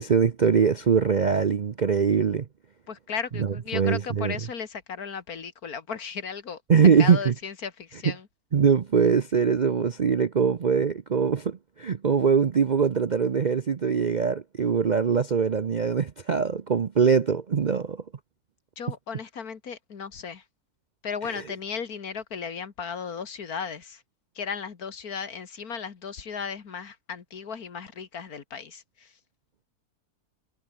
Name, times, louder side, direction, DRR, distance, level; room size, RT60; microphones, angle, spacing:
voice 1, 0.0-2.5 3.4-4.4 6.7-7.3 8.0-8.1 8.5-18.0 21.3-21.4, right 6 dB, 45° right, 0.5 m, -22 dB
voice 2, 2.9-6.6 7.0-8.3 18.8-20.4 21.0-24.0 24.4-29.1, left 6 dB, 70° left, 2.3 m, -35 dB
omnidirectional pair, 1.6 m